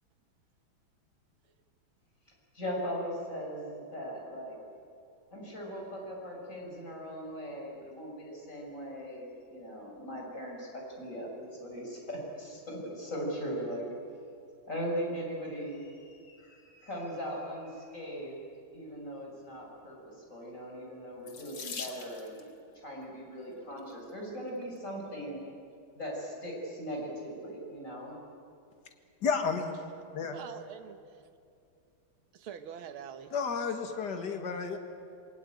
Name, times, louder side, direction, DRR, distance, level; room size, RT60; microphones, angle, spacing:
voice 1, 2.5-4.6 5.3-13.9 14.7-18.4 18.7-22.5 22.8-25.4 26.0-28.2, equal, 35° left, -1 dB, 7.0 m, -39 dB
Water tap faucet / Sink (filling or washing), 21.2-22.5 23.5-23.9 24.6-24.7 25.1-25.2, left 5 dB, 70° left, 2.8 m, -42 dB
voice 2, 29.2-29.8 30.1-30.4 33.3-34.8, left 5 dB, 55° left, 5 dB, 2.5 m, -31 dB
voice 3, 30.3-31.3 32.3-33.3, right 8 dB, 80° right, 7 dB, 2.1 m, -45 dB
27.0 x 24.0 x 9.2 m, 2.5 s
omnidirectional pair, 2.3 m